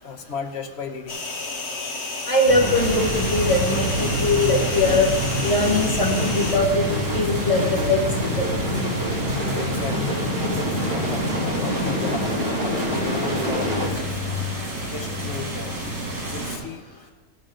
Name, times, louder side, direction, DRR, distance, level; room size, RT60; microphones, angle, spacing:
voice 1, 0.0-1.3 9.6-10.2 10.9-12.3 12.6-14.2 14.9-15.8 16.3-16.9, left 5 dB, 50° left, 5 dB, 1.0 m, -35 dB
sound 1, 1.1-6.6, left 3 dB, 75° left, 1.7 m, -31 dB
voice 2, 2.3-5.1 5.4-6.9 7.1-8.0 8.4-8.5, left 2 dB, 20° left, -3 dB, 1.8 m, -21 dB
sound 2, 2.5-13.9, equal, 40° right, 2.7 m, -26 dB
sound 3, 2.7-16.6, right 1 dB, 55° right, 2.5 m, -30 dB
15.0 x 6.5 x 3.7 m, 1.2 s
omnidirectional pair, 1.6 m